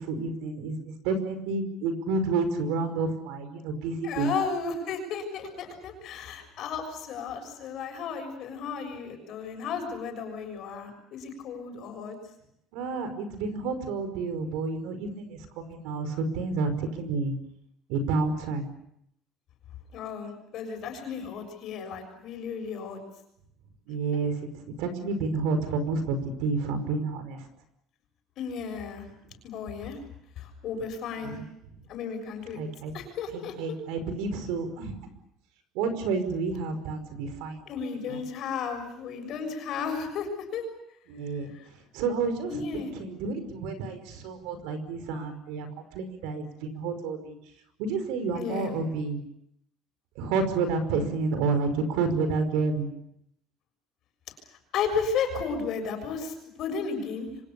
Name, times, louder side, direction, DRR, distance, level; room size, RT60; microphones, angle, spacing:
voice 1, 0.1-4.3 12.7-15.3 15.6-17.3 17.9-18.6 23.9-24.3 24.8-27.4 31.2-31.4 32.6-32.9 33.6-34.9 35.8-37.6 38.1-38.2 41.1-41.5 41.9-42.5 43.0-45.7 45.9-47.4 47.8-49.2 50.2-52.9, right 4 dB, 85° right, 10 dB, 5.3 m, -29 dB
voice 2, 4.0-12.2 19.9-23.0 24.1-24.2 28.4-29.1 29.4-30.0 30.4-31.4 31.9-32.6 32.9-33.8 37.7-40.6 41.5-41.7 42.5-42.9 48.3-48.8 54.7-57.3, left 5 dB, 45° left, 5 dB, 6.7 m, -34 dB
28.0 x 25.0 x 7.0 m, 0.75 s
cardioid pair, 170°, 0 cm